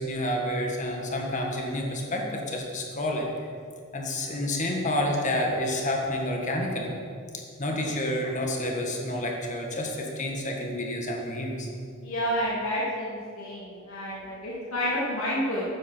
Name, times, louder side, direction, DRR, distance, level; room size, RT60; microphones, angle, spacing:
voice 1, 0.0-3.3 3.9-6.9 7.6-11.7, left 1 dB, 35° left, 1 dB, 1.6 m, -29 dB
voice 2, 12.0-15.7, equal, 80° left, -7 dB, 3.0 m, -30 dB
12.5 x 9.6 x 4.5 m, 2.3 s
head